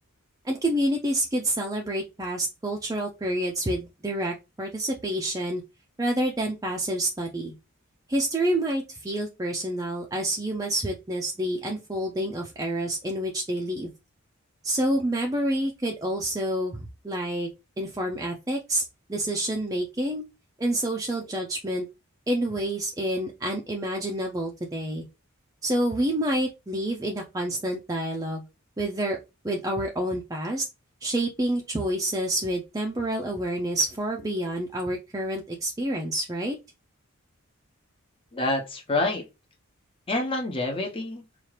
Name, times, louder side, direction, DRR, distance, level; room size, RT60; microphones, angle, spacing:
voice 1, 0.4-5.6 6.0-7.5 8.1-13.9 14.6-16.8 17.0-17.5 17.8-18.8 19.1-20.2 20.6-21.9 22.3-25.1 25.6-28.4 28.8-29.2 29.4-30.6 31.0-36.6, right 1 dB, 15° right, 0.5 m, -28 dB
voice 2, 38.3-39.2 40.1-41.2, left 2 dB, 25° left, 0.9 m, -27 dB
4.3 x 2.5 x 3.2 m
head